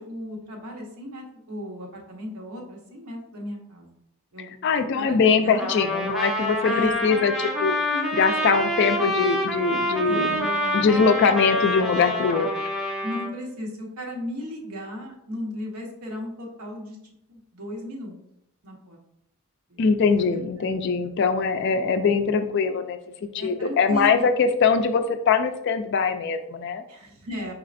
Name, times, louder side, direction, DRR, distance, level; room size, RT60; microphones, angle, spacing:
voice 1, 0.0-3.9 4.3-4.5 5.0-5.7 6.6-6.9 7.9-8.2 10.0-11.1 13.0-17.0 17.3-18.2 18.6-19.0 19.7-19.8 20.2-20.7 23.4-24.3 26.9-27.5, equal, 85° right, 0 dB, 1.1 m, -35 dB
voice 2, 4.4-10.4 10.7-12.5 19.8-26.8, left 5 dB, 50° left, 8 dB, 0.3 m, -22 dB
Trumpet, 5.6-13.3, left 1 dB, ahead, 0.6 m, -27 dB
4.7 x 4.2 x 2.5 m, 0.78 s
head